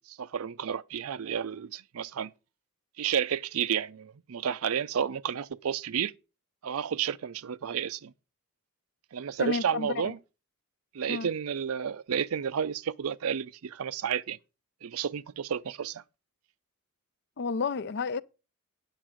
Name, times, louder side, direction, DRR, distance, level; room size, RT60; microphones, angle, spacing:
voice 1, 0.0-2.3 3.0-6.1 6.6-8.1 9.1-10.2 10.9-14.4 14.8-16.0, right 8 dB, 85° right, 0.5 m, -31 dB
voice 2, 9.4-10.1 11.1-11.3 17.4-18.2, left 4 dB, 55° left, 0.5 m, -31 dB
9.1 x 7.0 x 5.0 m
head